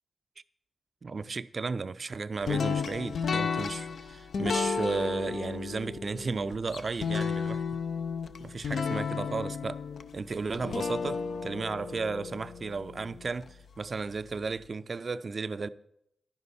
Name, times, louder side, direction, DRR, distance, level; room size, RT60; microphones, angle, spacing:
voice 1, 1.0-7.6 8.4-9.8 10.1-15.7, right 4 dB, 45° right, 0.4 m, -34 dB
sound 1, 2.5-13.5, left 5 dB, 70° left, 0.5 m, -33 dB
10.5 x 9.5 x 4.2 m
cardioid pair, 75°, 0 cm